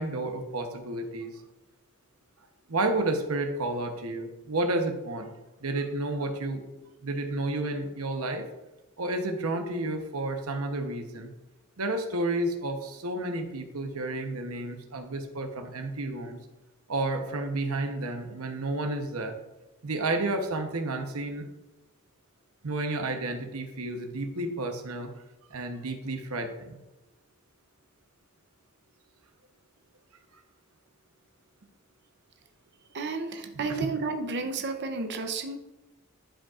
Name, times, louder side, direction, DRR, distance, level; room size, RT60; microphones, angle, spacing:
voice 1, 0.0-1.4 2.7-5.3 5.6-6.6 7.0-8.4 9.0-11.3 11.8-16.4 16.9-19.3 19.8-21.5 22.6-25.1 25.5-26.8, right 2 dB, 75° right, 5 dB, 0.9 m, -31 dB
voice 2, 32.9-35.6, right 3 dB, 50° right, 5 dB, 0.7 m, -32 dB
11.5 x 5.1 x 2.5 m, 1.0 s
head